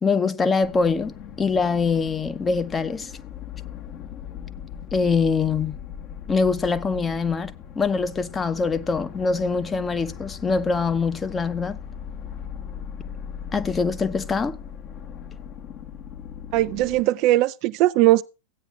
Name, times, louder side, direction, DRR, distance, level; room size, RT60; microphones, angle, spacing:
voice 1, 0.0-3.1 4.9-5.8 6.3-7.5 7.8-11.8 13.5-14.6, left 4 dB, 15° left, 0.8 m, -23 dB
sound 1, 0.6-17.0, left 8 dB, 35° left, 1.0 m, -39 dB
voice 2, 16.5-18.2, right 16 dB, 40° right, 0.4 m, -19 dB
16.0 x 9.0 x 2.4 m
figure-of-eight pair, 90°, 0 cm